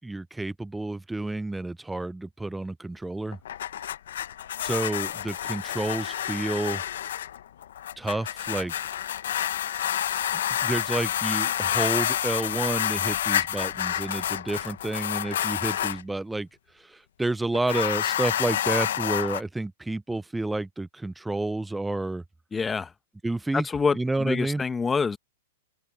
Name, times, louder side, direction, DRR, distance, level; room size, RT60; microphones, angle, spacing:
voice 1, 0.0-3.4 4.6-6.8 8.0-8.9 10.3-16.5 16.8-22.2 23.2-23.7 23.9-24.6, right 2 dB, 5° right, 0.5 m, -30 dB
sound 1, 3.3-16.0 17.6-19.4, left 11 dB, 70° left, 1.1 m, -29 dB
voice 2, 22.5-22.9 23.5-25.2, left 5 dB, 15° left, 1.1 m, -26 dB
hypercardioid pair, 125°, 0 cm